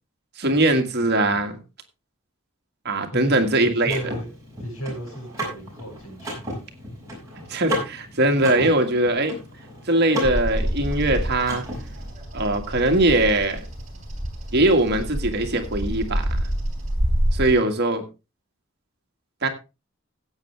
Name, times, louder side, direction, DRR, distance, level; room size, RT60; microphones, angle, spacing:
voice 1, 0.4-1.6 2.9-4.0 7.5-9.4 9.9-11.6 12.3-13.6 14.5-16.3 17.3-18.0 19.4-19.5, right 2 dB, 50° right, 5 dB, 1.8 m, -21 dB
voice 2, 3.1-4.3 4.6-6.5, right 1 dB, 80° left, 1 dB, 6.3 m, -35 dB
Car / Mechanisms, 3.2-12.1, equal, 15° right, 5.9 m, -35 dB
Bird vocalization bird call bird song, 10.2-17.5, equal, 35° right, 3.7 m, -27 dB
15.5 x 8.6 x 3.3 m, 0.28 s
head